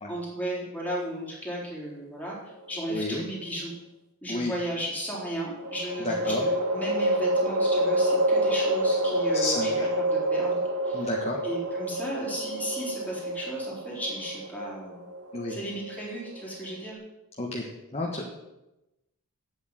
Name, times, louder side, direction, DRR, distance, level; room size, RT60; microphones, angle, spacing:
voice 1, 0.1-3.7 4.2-10.6 10.8-11.1 11.4-15.0 15.5-17.0, right 1 dB, 5° left, -4 dB, 4.1 m, -35 dB
sound 1, 2.5-3.3 5.6-16.9, right 1 dB, 90° right, 1.6 m, -28 dB
voice 2, 2.9-3.2 4.3-4.6 6.0-6.4 9.3-9.9 10.9-11.4 15.3-15.5 17.4-17.7 17.9-18.3, left 2 dB, 30° left, -1 dB, 1.5 m, -31 dB
8.7 x 8.1 x 9.1 m, 0.96 s
head